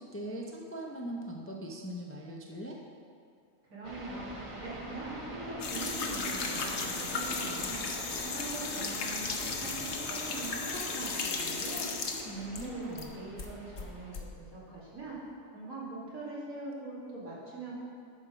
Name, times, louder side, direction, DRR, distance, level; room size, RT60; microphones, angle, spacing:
voice 1, 0.0-2.8 12.2-13.2, right 1 dB, 15° left, -1 dB, 0.4 m, -40 dB
voice 2, 3.7-7.8 8.2-11.9 12.5-15.2 15.5-17.8, right 2 dB, 85° right, -9 dB, 3.1 m, -42 dB
sound 1, 3.8-14.1, right 1 dB, 25° right, 0.9 m, -44 dB
sound 2, 5.6-13.1 13.4-14.2, left 4 dB, 60° left, 1.1 m, -35 dB
11.5 x 4.9 x 5.0 m, 2.4 s
omnidirectional pair, 1.4 m